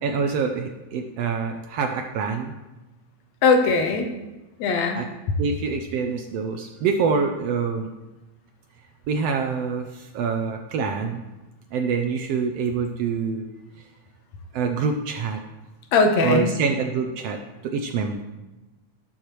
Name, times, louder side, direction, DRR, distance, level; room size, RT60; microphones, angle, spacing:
voice 1, 0.0-2.5 4.9-5.1 5.4-7.9 9.1-11.2 11.7-13.4 14.5-15.4 16.2-18.2, right 5 dB, 75° right, 5 dB, 1.5 m, -26 dB
voice 2, 3.4-4.1 4.6-5.0 15.9-16.5, left 4 dB, 75° left, 4 dB, 2.1 m, -19 dB
17.5 x 6.6 x 3.1 m, 1.1 s
omnidirectional pair, 3.3 m